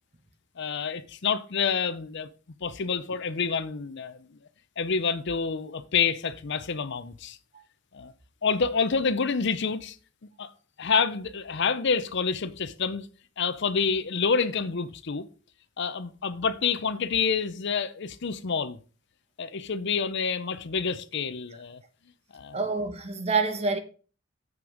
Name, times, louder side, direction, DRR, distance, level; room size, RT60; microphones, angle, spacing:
voice 1, 0.6-2.3 2.6-4.3 4.8-7.4 7.9-8.1 8.4-10.0 10.4-10.5 10.8-13.1 13.4-15.3 15.8-18.8 19.4-21.8 22.3-22.6, left 5 dB, 60° left, 0.7 m, -28 dB
voice 2, 22.5-23.8, right 4 dB, 30° right, 1.3 m, -27 dB
7.6 x 6.1 x 5.0 m
head